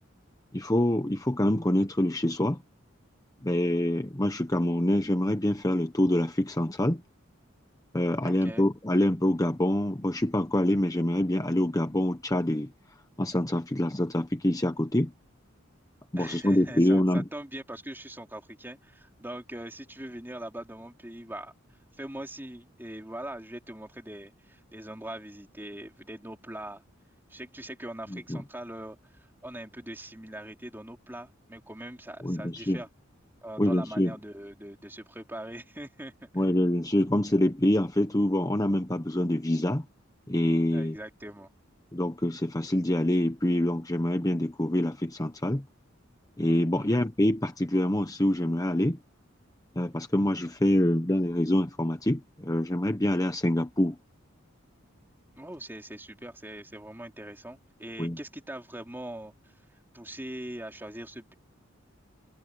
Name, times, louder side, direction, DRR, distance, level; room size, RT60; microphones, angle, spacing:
voice 1, 0.5-2.6 3.4-7.0 7.9-12.7 13.2-15.1 16.1-17.2 28.1-28.4 32.2-32.8 33.6-34.1 36.4-39.8 40.3-41.0 41.9-45.6 46.4-49.0 49.8-54.0 58.0-58.2, left 1 dB, 15° left, 1.0 m, -26 dB
voice 2, 8.2-8.7 16.2-21.5 21.9-26.8 27.3-32.9 33.4-36.4 40.7-41.5 46.8-47.1 55.3-61.3, right 1 dB, 10° right, 3.5 m, -42 dB
head